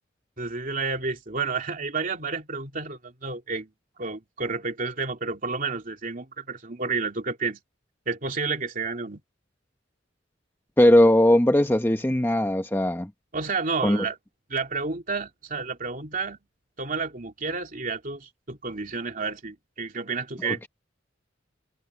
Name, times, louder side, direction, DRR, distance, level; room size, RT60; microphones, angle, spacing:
voice 1, 0.4-3.7 4.0-7.6 8.1-9.2 13.3-14.2 14.5-16.4 16.8-20.7, right 4 dB, 45° right, 2.9 m, -30 dB
voice 2, 10.8-13.1 13.8-14.0 20.4-20.7, left 1 dB, 10° left, 0.9 m, -19 dB
head